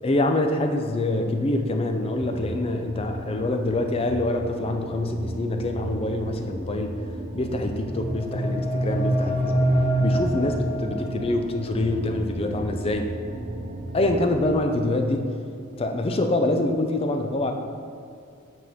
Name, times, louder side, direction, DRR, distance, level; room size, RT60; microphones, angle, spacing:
voice 1, 0.0-6.9 7.3-9.7 10.0-13.1 13.9-15.3 15.8-17.5, left 2 dB, 25° left, 5 dB, 0.5 m, -25 dB
sound 1, 2.2-14.4, right 2 dB, 35° right, 0.5 m, -36 dB
sound 2, 7.6-11.5, right 1 dB, 45° left, 1.0 m, -25 dB
8.6 x 4.5 x 3.5 m, 2.4 s
head